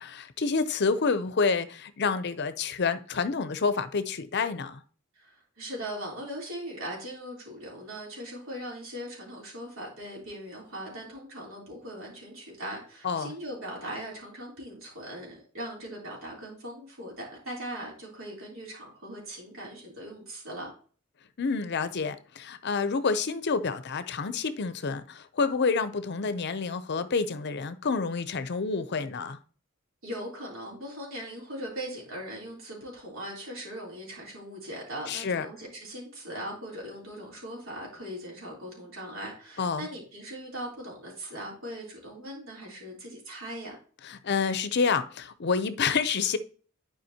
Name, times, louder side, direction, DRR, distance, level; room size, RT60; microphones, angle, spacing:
voice 1, 0.0-4.8 13.0-13.3 21.4-29.4 35.1-35.5 39.6-39.9 44.0-46.4, left 5 dB, 55° left, 0.6 m, -28 dB
voice 2, 5.2-20.7 30.0-43.8, right 1 dB, 70° right, 3.5 m, -40 dB
10.5 x 5.0 x 2.8 m
head